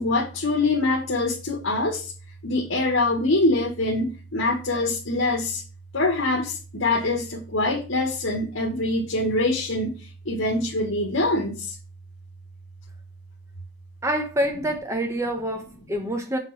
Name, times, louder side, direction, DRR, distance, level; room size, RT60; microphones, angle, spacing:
voice 1, 0.0-2.1 2.4-5.6 5.9-9.9 10.2-11.7, left 2 dB, 75° left, 1.6 m, -24 dB
voice 2, 14.0-16.4, right 1 dB, 15° right, 1.0 m, -26 dB
7.4 x 3.8 x 6.3 m
head